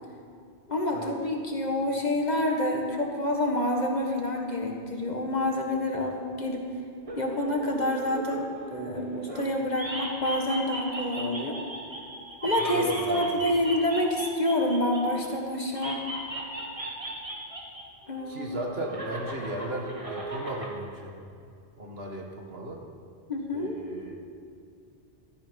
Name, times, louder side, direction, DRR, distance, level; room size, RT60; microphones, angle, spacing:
voice 1, 0.7-6.7 7.2-11.6 12.4-16.0 18.1-18.5 23.3-23.8, left 1 dB, 40° left, 1 dB, 1.8 m, -28 dB
sound 1, 7.1-9.5 9.7-15.3 15.7-17.8 18.1-20.7, right 1 dB, 30° right, 2.0 m, -37 dB
voice 2, 12.7-13.4 18.3-21.2 21.8-22.8 23.5-24.1, right 1 dB, 60° right, 1 dB, 1.9 m, -36 dB
16.5 x 13.5 x 5.3 m, 2.3 s
omnidirectional pair, 1.2 m